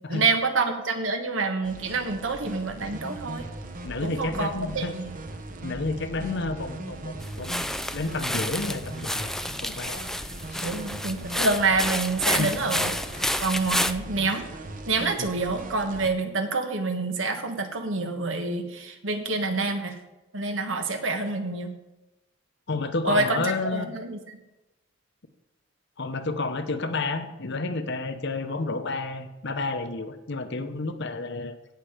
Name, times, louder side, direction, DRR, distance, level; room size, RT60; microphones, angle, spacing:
voice 1, 0.1-3.4 4.0-5.2 6.3-6.4 10.6-14.5 14.9-20.0 20.3-21.7 23.0-24.4, right 3 dB, 75° right, 6 dB, 1.4 m, -27 dB
sound 1, 1.6-16.1, right 1 dB, 45° right, 1.0 m, -39 dB
voice 2, 3.8-4.9 5.6-7.5 7.9-10.7 12.3-12.5 15.2-15.3 22.7-23.9 26.0-31.5, left 3 dB, 60° left, 9 dB, 1.0 m, -31 dB
sound 2, 7.2-13.9, left 1 dB, ahead, 0.4 m, -30 dB
17.0 x 5.8 x 5.1 m, 1.0 s
head